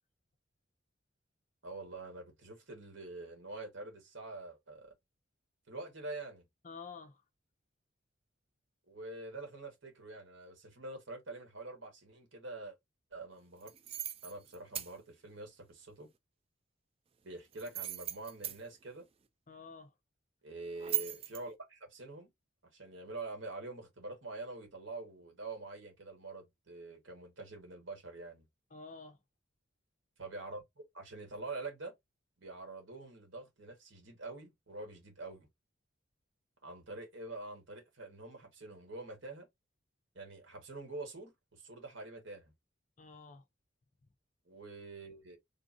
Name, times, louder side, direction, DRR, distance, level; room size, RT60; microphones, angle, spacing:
voice 1, 1.6-4.9 5.7-6.4 8.9-12.8 13.1-13.7 14.2-16.1 17.2-19.1 20.4-22.3 22.7-28.5 30.2-30.6 30.9-31.9 32.4-35.5 36.6-39.5 40.1-42.5 44.5-45.4, right 2 dB, 75° right, 1.5 m, -46 dB
voice 2, 6.6-7.2 19.5-19.9 28.7-29.2 43.0-43.4, left 4 dB, 40° left, 0.5 m, -49 dB
Metallic Keys, 13.6-14.9 17.5-18.6 20.8-21.4, right 13 dB, 30° right, 0.3 m, -38 dB
3.7 x 2.6 x 2.6 m
head